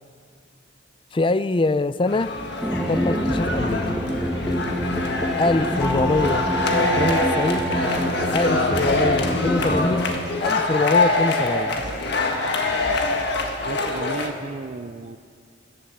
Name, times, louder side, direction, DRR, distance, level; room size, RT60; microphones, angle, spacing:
voice 1, 1.1-2.3 2.9-4.0 5.4-6.5 7.0-7.7 8.3-10.1 10.4-11.9, left 2 dB, 25° left, 15 dB, 0.4 m, -24 dB
sound 1, 2.1-14.3, left 2 dB, 60° left, 1.7 m, -24 dB
sound 2, 2.6-10.0, equal, 5° right, 1.5 m, -26 dB
voice 2, 13.7-15.2, right 3 dB, 40° right, 11 dB, 0.4 m, -34 dB
17.0 x 11.5 x 7.2 m, 2.1 s
head